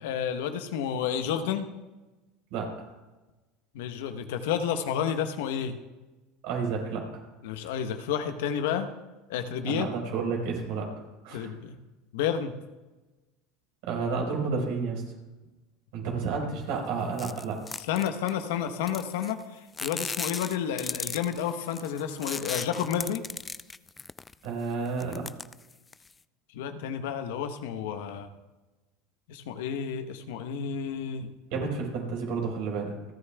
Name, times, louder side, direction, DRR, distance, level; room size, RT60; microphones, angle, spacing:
voice 1, 0.0-1.7 3.7-5.8 7.4-8.9 9.3-9.9 11.3-11.8 12.1-12.5 17.9-23.2 26.5-28.3 29.3-31.3, left 8 dB, 75° left, 8 dB, 1.0 m, -30 dB
voice 2, 2.5-2.9 6.4-7.2 9.7-10.9 11.2-11.5 13.8-15.0 15.9-17.6 24.4-25.3 31.5-32.9, right 4 dB, 70° right, 0 dB, 4.4 m, -31 dB
sound 1, 17.2-18.4 18.9-19.4 19.7-24.5 24.9-26.1, left 4 dB, 20° left, 0.4 m, -36 dB
28.5 x 9.7 x 2.3 m, 1.1 s
hypercardioid pair, 90°, 0 cm